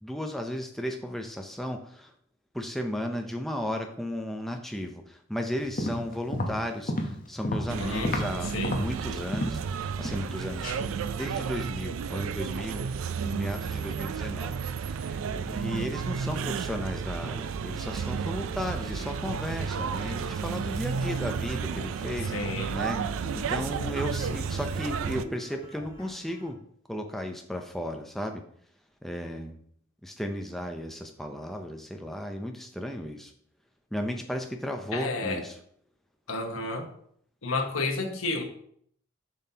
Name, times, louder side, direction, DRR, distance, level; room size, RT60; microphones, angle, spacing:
voice 1, 0.0-2.1 2.5-12.9 13.2-26.6 26.9-28.4 29.0-29.6 30.0-33.3 33.9-35.6, equal, ahead, 3 dB, 0.5 m, -35 dB
sound 1, 5.6-8.4 8.6-9.7 10.0-10.4 10.6-10.8, left 1 dB, 40° left, 0.8 m, -31 dB
sound 2, 7.7-25.3, right 6 dB, 80° right, 0.3 m, -32 dB
voice 2, 7.8-8.1 8.5-8.7 22.3-22.7 34.9-35.4 36.3-36.9 37.4-38.4, left 3 dB, 80° left, 4 dB, 1.0 m, -31 dB
sound 3, 18.5-26.5, right 1 dB, 25° left, 1.9 m, -47 dB
7.2 x 5.9 x 2.8 m, 0.65 s
head